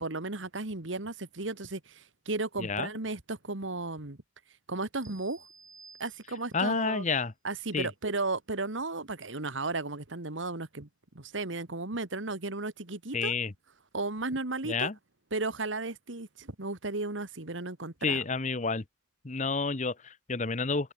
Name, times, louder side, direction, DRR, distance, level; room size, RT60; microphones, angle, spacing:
voice 1, 0.0-4.2 4.7-5.4 6.0-7.1 7.4-10.9 11.2-13.3 13.9-14.9 15.3-18.2, right 3 dB, 80° right, 2.1 m, -34 dB
voice 2, 2.6-2.9 6.5-7.3 7.7-7.9 13.1-13.5 14.6-14.9 18.0-18.8 19.2-20.9, left 4 dB, 40° left, 1.0 m, -30 dB
sound 1, 5.0-6.7, right 5 dB, 20° right, 6.9 m, -55 dB
head